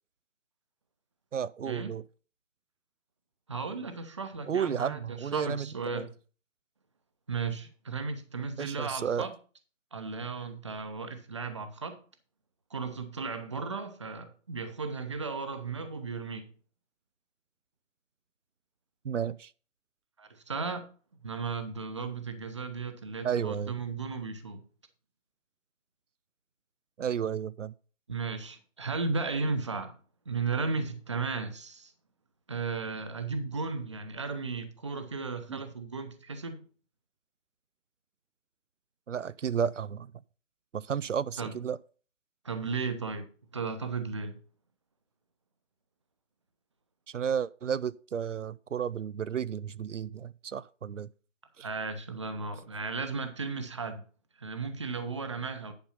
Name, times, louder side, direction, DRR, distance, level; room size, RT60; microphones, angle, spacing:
voice 1, 1.3-2.0 4.5-6.1 8.6-9.3 19.0-19.5 23.2-23.8 27.0-27.7 35.5-35.6 39.1-40.1 40.7-41.8 47.1-51.1 51.6-51.7, right 8 dB, 80° right, 0.5 m, -32 dB
voice 2, 3.5-6.1 7.3-9.3 9.9-12.0 12.7-16.5 20.2-20.8 21.2-24.6 28.1-30.0 30.3-31.9 32.5-36.6 41.4-41.5 42.4-43.3 43.5-44.4 51.6-54.0 54.4-55.7, right 4 dB, 25° right, 0.8 m, -35 dB
10.5 x 5.3 x 5.6 m
figure-of-eight pair, 160°, 37 cm